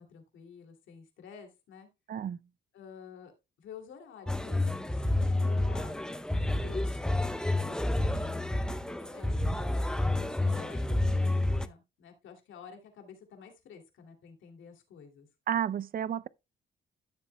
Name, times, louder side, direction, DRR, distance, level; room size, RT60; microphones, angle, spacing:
voice 1, 0.0-1.9 2.7-3.3 3.6-7.1 7.5-8.3 8.9-9.9 10.2-15.3, left 6 dB, 75° left, 2.7 m, -50 dB
sound 1, 4.3-11.7, left 1 dB, 5° left, 0.6 m, -29 dB
voice 2, 15.5-16.3, right 9 dB, 45° right, 0.5 m, -31 dB
13.0 x 7.1 x 2.3 m
cardioid pair, 90°, 20 cm